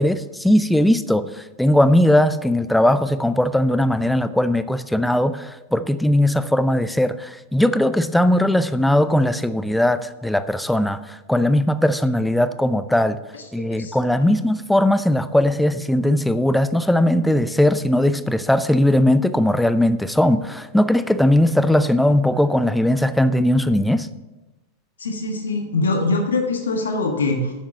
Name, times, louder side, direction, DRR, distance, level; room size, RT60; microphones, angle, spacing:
voice 1, 0.0-13.2 13.5-24.1, left 1 dB, 5° left, 13 dB, 0.5 m, -19 dB
voice 2, 25.0-27.5, left 3 dB, 70° left, 3 dB, 1.4 m, -23 dB
10.0 x 7.3 x 7.0 m, 1.1 s
figure-of-eight pair, 90°, 0 cm